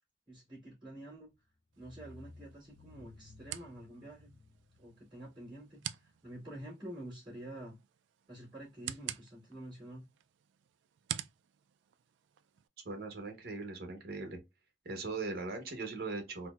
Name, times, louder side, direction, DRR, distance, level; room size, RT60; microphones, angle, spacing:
voice 1, 0.3-1.3 1.8-4.4 4.8-7.8 8.3-10.1, right 1 dB, 25° right, 2.1 m, -48 dB
sound 1, 1.3-1.4 1.7-6.4, left 2 dB, 45° left, 0.6 m, -57 dB
sound 2, 1.7-12.7, right 11 dB, 75° right, 0.3 m, -48 dB
voice 2, 12.8-14.4 14.8-16.5, right 3 dB, 55° right, 1.0 m, -39 dB
4.2 x 2.1 x 2.3 m
head